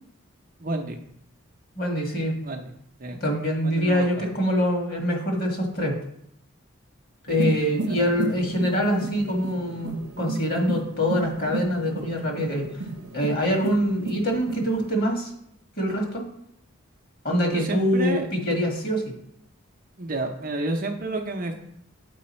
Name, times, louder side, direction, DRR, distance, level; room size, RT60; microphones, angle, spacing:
voice 1, 0.6-1.0 2.4-2.7 3.0-3.2 3.6-4.3 8.0-8.1 17.5-18.3 20.0-21.6, right 2 dB, 40° right, 3 dB, 0.6 m, -30 dB
voice 2, 1.8-2.4 3.2-6.0 7.3-12.6 13.1-15.3 15.8-16.2 17.2-19.0, equal, 40° left, 1 dB, 1.5 m, -24 dB
sound 1, 7.3-15.0, right 2 dB, 85° right, 0.7 m, -33 dB
7.6 x 4.8 x 4.2 m, 0.73 s
head